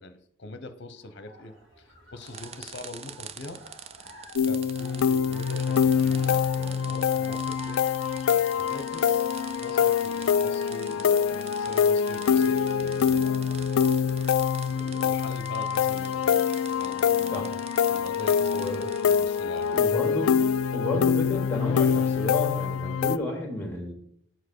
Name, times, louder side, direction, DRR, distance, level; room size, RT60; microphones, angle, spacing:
voice 1, 0.0-3.6 4.4-7.8 8.6-13.7 14.6-16.4 16.7-17.4 17.9-18.7 19.1-19.8, left 1 dB, 55° left, 10 dB, 0.9 m, -43 dB
sound 1, 1.0-10.7, right 2 dB, 70° right, 2.7 m, -51 dB
sound 2, 2.2-19.9, right 8 dB, 30° right, 0.3 m, -46 dB
sound 3, 4.3-23.2, left 7 dB, 85° left, 0.4 m, -25 dB
voice 2, 18.5-18.9 19.7-20.4 20.7-23.9, left 2 dB, 10° left, 2 dB, 2.0 m, -31 dB
7.9 x 4.6 x 6.4 m, 0.68 s
head